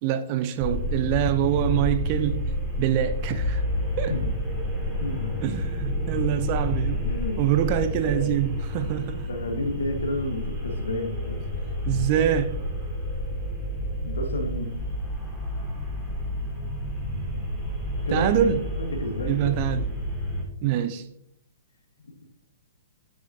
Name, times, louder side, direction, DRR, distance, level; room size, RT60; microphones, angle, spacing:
voice 1, 0.0-3.6 4.0-4.1 5.4-7.1 7.4-9.3 11.9-12.6 18.1-18.6 19.3-19.8 20.6-21.0, right 10 dB, 40° right, 0.5 m, -25 dB
sound 1, 0.6-20.4, left 1 dB, 10° right, 2.3 m, -30 dB
voice 2, 5.0-5.3 7.0-7.4 8.0-8.4 9.3-11.4 14.0-14.7 18.0-18.3 18.8-19.5, left 2 dB, 70° left, 1.4 m, -30 dB
7.3 x 6.4 x 2.7 m
figure-of-eight pair, 125°, 0 cm